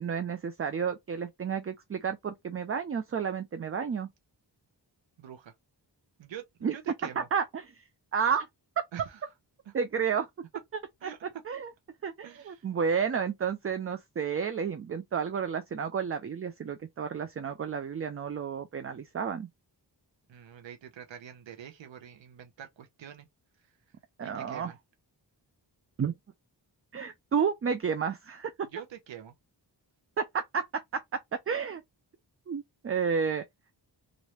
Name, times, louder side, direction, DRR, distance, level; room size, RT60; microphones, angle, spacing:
voice 1, 0.0-4.1 6.6-6.7 7.2-7.8 8.1-8.5 9.7-10.3 11.0-11.1 11.5-11.7 12.0-19.5 24.2-24.7 26.0-26.2 26.9-28.5 30.2-31.8 32.5-33.4, right 6 dB, 35° right, 0.4 m, -31 dB
voice 2, 5.2-5.5 6.2-7.3 8.9-9.2 9.7-9.8 11.0-11.2 12.2-12.7 20.3-23.3 23.6-23.7 24.2-24.8 28.7-29.3, right 9 dB, 85° right, 0.7 m, -45 dB
3.1 x 2.6 x 2.9 m
wide cardioid pair, 95°, 44 cm